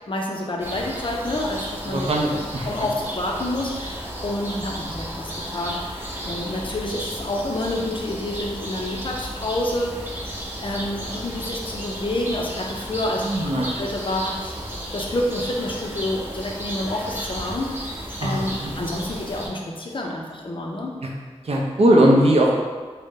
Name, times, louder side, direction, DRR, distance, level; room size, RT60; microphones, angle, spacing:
voice 1, 0.1-10.0 10.6-14.6 14.9-20.9, left 1 dB, 45° left, 0 dB, 0.4 m, -28 dB
sound 1, 0.6-19.5, equal, 20° right, 0.6 m, -33 dB
voice 2, 1.9-2.7 13.2-13.8 18.2-18.7 21.0-21.1 21.4-22.6, right 1 dB, 60° right, -1 dB, 0.5 m, -19 dB
2.6 x 2.1 x 3.6 m, 1.4 s
wide cardioid pair, 60°, 12 cm